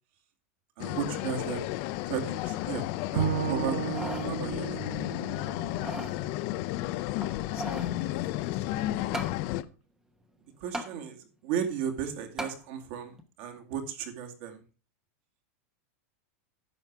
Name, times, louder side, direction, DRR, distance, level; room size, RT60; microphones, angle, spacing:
sound 1, 0.8-9.6, left 16 dB, 40° left, 0.6 m, -33 dB
voice 1, 0.8-1.6 2.1-2.9 3.1-4.8 10.6-14.6, right 8 dB, 50° right, 3 dB, 2.4 m, -35 dB
Bowed string instrument, 3.2-6.4, right 8 dB, 70° right, 1.3 m, -34 dB
sound 2, 3.7-4.3 4.8-4.9 5.6-6.2 7.2-8.0 9.1-9.4 10.7-10.9 12.4-12.6 13.2-13.3, right 1 dB, 5° right, 1.0 m, -37 dB
voice 2, 7.5-9.1, left 11 dB, 65° left, 7 dB, 1.5 m, -42 dB
11.0 x 7.5 x 4.7 m, 0.34 s
supercardioid pair, 160°, 8 cm